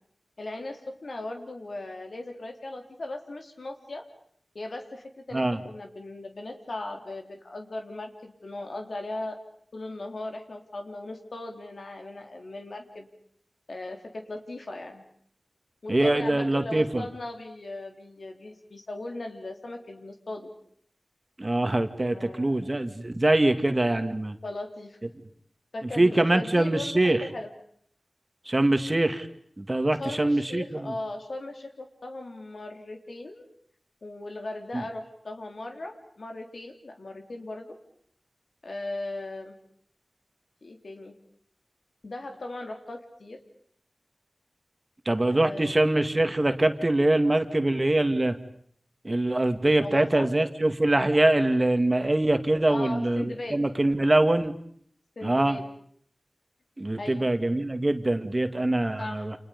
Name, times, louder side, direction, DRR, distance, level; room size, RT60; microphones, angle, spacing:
voice 1, 0.4-4.1 4.5-9.4 9.7-13.1 13.7-15.0 15.8-20.5 22.1-22.6 24.4-25.0 25.7-27.5 30.0-33.4 34.0-37.7 38.6-39.5 40.6-41.1 42.0-43.4 45.3-46.0 49.8-50.3 52.7-53.6 55.2-55.7 57.0-57.3 59.0-59.3, left 2 dB, 75° left, 3 dB, 3.7 m, -38 dB
voice 2, 15.9-17.0 21.4-24.4 25.9-27.2 28.5-29.3 29.6-30.9 34.7-34.8 45.1-48.4 49.0-54.5 55.2-55.6 56.8-59.4, right 1 dB, 35° right, 8 dB, 2.0 m, -23 dB
29.5 x 28.5 x 5.3 m, 0.63 s
wide cardioid pair, 60°, 0 cm